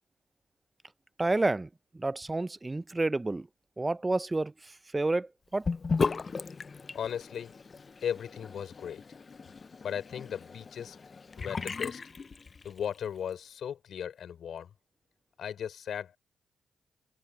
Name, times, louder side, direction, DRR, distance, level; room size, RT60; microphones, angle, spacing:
voice 1, 1.2-1.7 1.9-3.5 3.8-4.5 4.9-5.7, right 2 dB, 25° right, 0.6 m, -29 dB
Sink (filling or washing) / Bathtub (filling or washing), 5.6-13.0, left 4 dB, 45° left, 0.5 m, -36 dB
voice 2, 6.9-7.5 8.0-9.0 9.8-11.0 11.4-12.0 12.6-14.7 15.4-16.2, left 8 dB, 70° left, 4.5 m, -36 dB
supercardioid pair, 60°, 0 cm